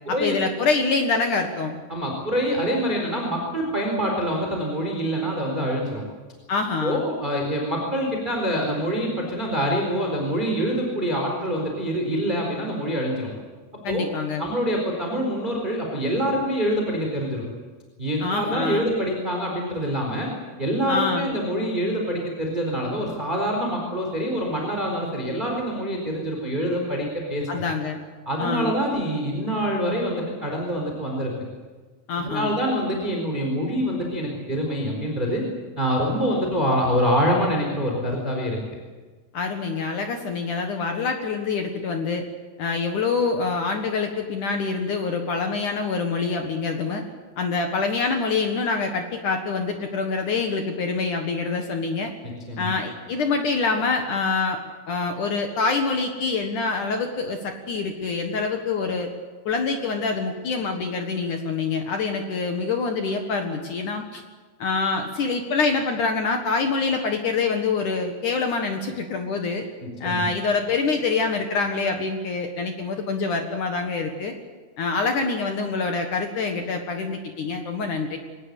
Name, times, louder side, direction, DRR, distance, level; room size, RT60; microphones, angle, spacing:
voice 1, 0.1-1.8 6.5-7.0 13.8-14.5 18.2-18.9 20.9-21.3 27.5-28.0 28.4-28.7 32.1-32.6 39.3-42.2 42.6-47.0 47.4-52.1 52.6-54.6 54.9-59.1 59.5-64.2 64.6-69.6 70.0-74.3 74.8-78.2, left 4 dB, 70° left, 4 dB, 1.9 m, -25 dB
voice 2, 1.9-6.0 6.8-13.3 13.9-14.1 14.4-17.4 18.0-20.3 20.6-27.5 28.2-31.3 32.2-35.4 35.8-38.6 52.2-52.7 69.8-70.3, equal, 10° right, 0 dB, 3.5 m, -25 dB
24.0 x 19.5 x 8.3 m, 1.4 s
omnidirectional pair, 6.0 m